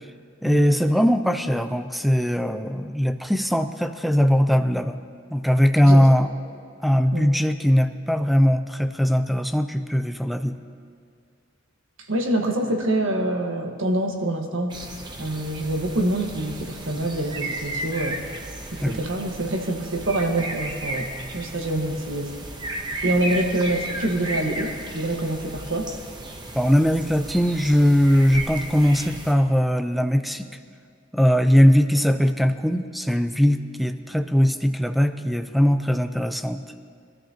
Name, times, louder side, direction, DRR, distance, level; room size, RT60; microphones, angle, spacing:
voice 1, 0.4-5.0 5.3-6.3 6.8-10.6 18.8-19.1 26.5-30.5 31.1-36.6, equal, ahead, 9 dB, 0.5 m, -20 dB
voice 2, 12.1-14.8 15.2-18.2 18.7-22.3 23.0-25.9, right 1 dB, 75° right, 2 dB, 1.5 m, -26 dB
sound 1, 14.7-29.3, right 2 dB, 20° right, 1.0 m, -34 dB
23.5 x 13.0 x 2.9 m, 2.2 s
head